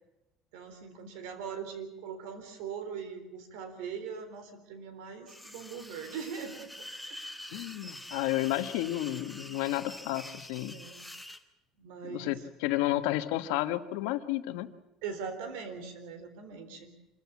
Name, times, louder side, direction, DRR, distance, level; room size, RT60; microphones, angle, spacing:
voice 1, 0.5-7.4 9.4-9.6 10.7-11.1 11.8-12.4 15.0-16.9, right 6 dB, 85° right, 9 dB, 3.8 m, -41 dB
sound 1, 5.3-11.4, left 1 dB, ahead, 1.0 m, -46 dB
voice 2, 7.5-10.7 12.1-14.7, left 15 dB, 90° left, 10 dB, 1.3 m, -31 dB
25.5 x 14.5 x 8.5 m, 0.94 s
cardioid pair, 170°, 0 cm